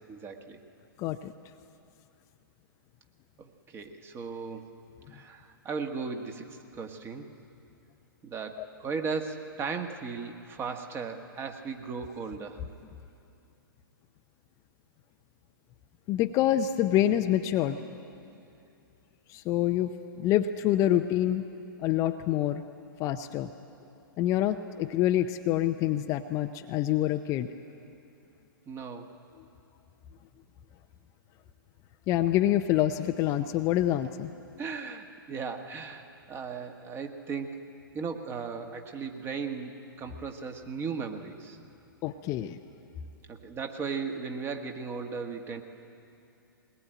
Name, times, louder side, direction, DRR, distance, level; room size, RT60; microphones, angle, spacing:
voice 1, 0.1-0.6 3.4-4.7 5.1-7.3 8.2-12.6 28.7-29.1 34.6-37.6 37.9-39.7 40.0-41.6 43.3-45.6, right 5 dB, 20° right, 5 dB, 1.6 m, -36 dB
voice 2, 1.0-1.3 8.6-8.7 16.1-17.8 19.3-21.4 21.8-22.6 23.0-23.5 24.2-27.5 32.1-34.3 42.0-42.6, left 12 dB, 25° left, 7 dB, 0.6 m, -26 dB
21.0 x 20.0 x 9.0 m, 2.6 s
figure-of-eight pair, 115°, 12 cm